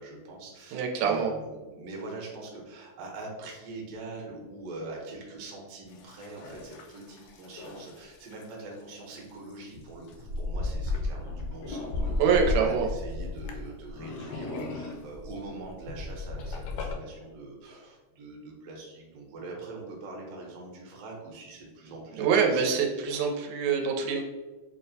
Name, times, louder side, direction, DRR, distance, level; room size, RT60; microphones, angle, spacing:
voice 1, 0.0-23.2, right 2 dB, 70° right, -1 dB, 1.8 m, -43 dB
voice 2, 0.7-1.3 12.2-12.9 22.2-24.2, right 6 dB, 90° right, 1 dB, 2.0 m, -25 dB
sound 1, 5.9-8.4 9.2-9.3 9.5-17.0, left 2 dB, 80° left, 1.5 m, -34 dB
6.1 x 2.0 x 2.6 m, 1.3 s
omnidirectional pair, 3.4 m